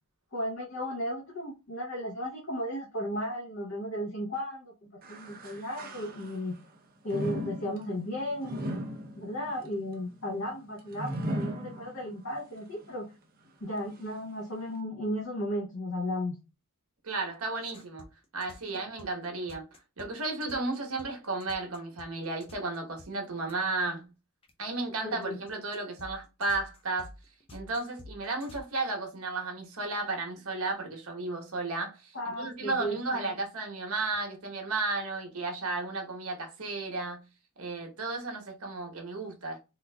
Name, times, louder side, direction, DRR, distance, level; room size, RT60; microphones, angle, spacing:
voice 1, 0.3-4.7 5.1-6.6 7.0-8.6 9.1-13.1 13.6-16.4 18.7-18.8 25.0-25.4 32.1-33.3, equal, 60° left, 0.8 m, -35 dB
sound 1, 5.0-6.6 7.1-12.3 12.8-12.9 13.8-13.9, equal, 40° right, 0.6 m, -37 dB
voice 2, 17.0-18.0 18.3-19.6 20.0-24.1 24.6-27.1 27.5-37.2 37.6-39.6, right 3 dB, 80° right, 1.1 m, -33 dB
sound 2, 17.6-23.1 23.4-23.5 24.4-28.6, left 2 dB, 25° left, 0.5 m, -50 dB
3.8 x 2.4 x 2.2 m
head